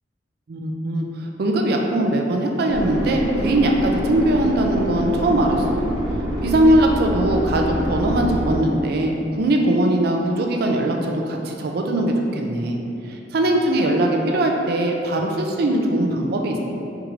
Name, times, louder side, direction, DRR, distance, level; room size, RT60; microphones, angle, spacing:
voice 1, 0.5-5.8 6.4-12.8 13.1-16.6, right 1 dB, 60° right, 1 dB, 0.4 m, -21 dB
sound 1, 2.7-8.6, equal, 20° right, 0.8 m, -25 dB
4.5 x 2.5 x 3.1 m, 2.8 s
head